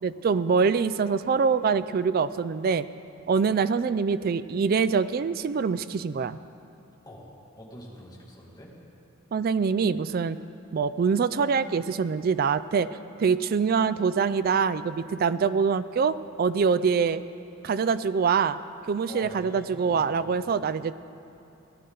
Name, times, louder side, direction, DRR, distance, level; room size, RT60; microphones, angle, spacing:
voice 1, 0.0-2.9 3.3-6.4 9.3-10.4 10.7-12.9 13.2-17.2 17.6-18.6 18.9-21.0, right 5 dB, 45° right, 14 dB, 0.3 m, -24 dB
voice 2, 7.5-8.7 19.1-20.5, equal, 20° left, -4 dB, 2.0 m, -45 dB
17.5 x 11.0 x 3.9 m, 2.7 s
head